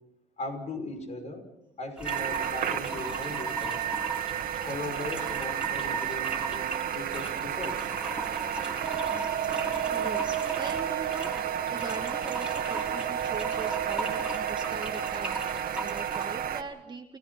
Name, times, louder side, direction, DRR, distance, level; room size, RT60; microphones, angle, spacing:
voice 1, 0.4-1.5 1.8-3.9 4.6-7.9, left 2 dB, 40° left, 6 dB, 5.9 m, -38 dB
sound 1, 2.0-16.4, right 2 dB, 5° right, 4.7 m, -38 dB
sound 2, 2.0-16.6, right 10 dB, 60° right, 1.8 m, -31 dB
voice 2, 9.8-17.2, right 4 dB, 25° right, 4 dB, 1.5 m, -41 dB
30.0 x 17.5 x 5.7 m, 0.91 s
cardioid pair, 110°, 17 cm